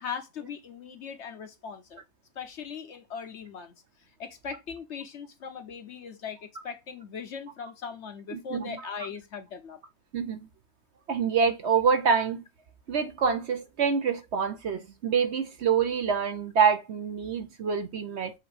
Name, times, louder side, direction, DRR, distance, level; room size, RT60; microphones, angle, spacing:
voice 1, 0.0-2.0 2.4-3.7 4.2-9.8, left 6 dB, 60° left, 0.9 m, -39 dB
voice 2, 8.3-8.9 10.1-10.5 11.1-12.4 12.9-18.3, right 6 dB, 55° right, 0.9 m, -26 dB
7.8 x 2.7 x 4.9 m
omnidirectional pair, 1.5 m